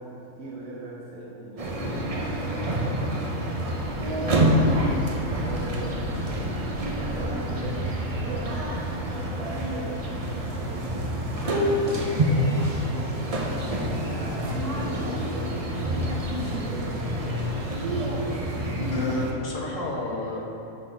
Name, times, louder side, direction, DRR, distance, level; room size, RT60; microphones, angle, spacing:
voice 1, 0.0-3.6 3.9-8.8 9.1-18.5, right 2 dB, 75° right, -6 dB, 1.5 m, -40 dB
sound 1, 1.6-19.3, equal, 35° right, 0.6 m, -27 dB
sound 2, 3.4-9.3 9.7-10.1 11.2-11.5 12.7-13.1, left 2 dB, 20° left, 0.4 m, -44 dB
voice 2, 18.9-20.4, left 2 dB, 65° left, -2 dB, 1.5 m, -31 dB
11.0 x 4.2 x 4.5 m, 3.0 s
omnidirectional pair, 1.4 m